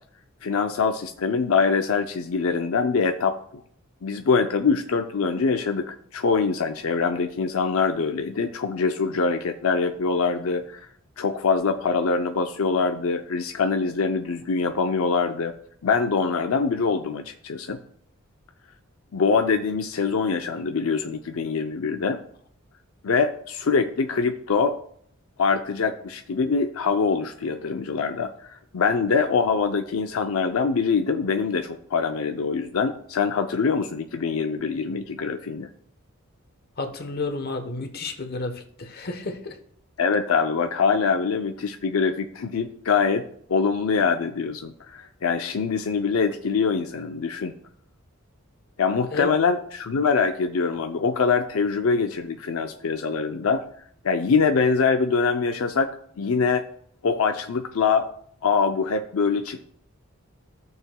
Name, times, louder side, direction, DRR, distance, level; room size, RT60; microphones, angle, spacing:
voice 1, 0.4-3.6 4.0-10.9 11.2-15.5 15.8-17.8 19.1-22.2 23.0-24.8 25.4-35.7 40.0-47.5 48.8-53.6 54.0-56.6 57.0-58.1 58.4-59.7, left 5 dB, 80° left, 6 dB, 0.5 m, -24 dB
voice 2, 36.8-39.5 49.1-49.3, left 3 dB, 50° left, 6 dB, 1.0 m, -31 dB
15.0 x 6.8 x 2.3 m, 0.63 s
head